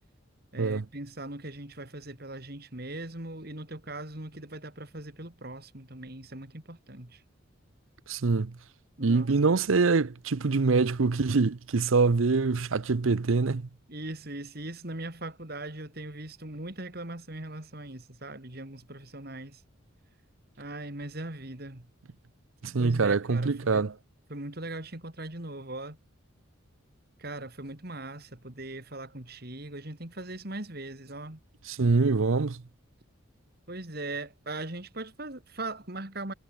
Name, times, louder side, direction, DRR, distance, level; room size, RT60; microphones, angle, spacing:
voice 1, 0.5-7.2 9.0-9.5 13.9-19.6 20.6-21.9 22.8-23.9 24.3-26.0 27.2-31.4 33.7-36.3, right 2 dB, 45° right, 2.8 m, -40 dB
voice 2, 8.1-8.5 9.0-13.6 22.6-23.9 31.7-32.6, right 4 dB, 70° right, 0.7 m, -24 dB
head